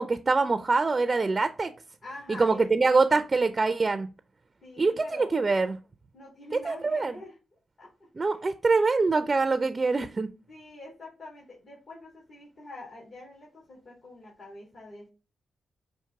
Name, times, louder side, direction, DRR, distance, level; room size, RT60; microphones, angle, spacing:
voice 1, 0.0-1.7 2.4-4.1 4.8-5.8 6.6-7.1 8.2-10.3, right 3 dB, 35° right, 0.4 m, -24 dB
voice 2, 2.0-3.2 4.6-5.4 6.1-7.4 7.8-8.4 10.5-15.1, left 2 dB, 65° left, 2.5 m, -46 dB
5.8 x 2.6 x 3.5 m
cardioid pair, 55°, 0 cm